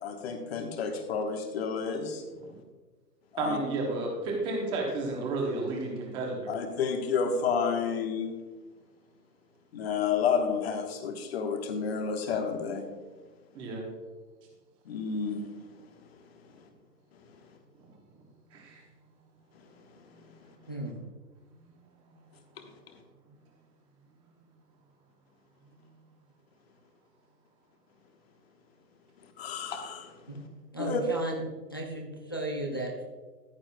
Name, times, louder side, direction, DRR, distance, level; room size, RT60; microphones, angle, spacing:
voice 1, 0.0-2.2 3.3-3.6 6.5-8.3 9.7-12.8 14.9-15.4 29.4-30.1 30.8-31.0, left 6 dB, 40° left, 5 dB, 1.2 m, -30 dB
voice 2, 3.4-6.5 13.5-13.8 18.2-18.3 18.5-18.9 21.5-21.6 22.1-22.2, right 2 dB, 10° right, -1 dB, 0.9 m, -32 dB
voice 3, 30.7-31.4 31.7-33.0, right 2 dB, 15° left, -1 dB, 0.5 m, -34 dB
14.5 x 9.1 x 2.2 m, 1.3 s
hypercardioid pair, 155°, 50 cm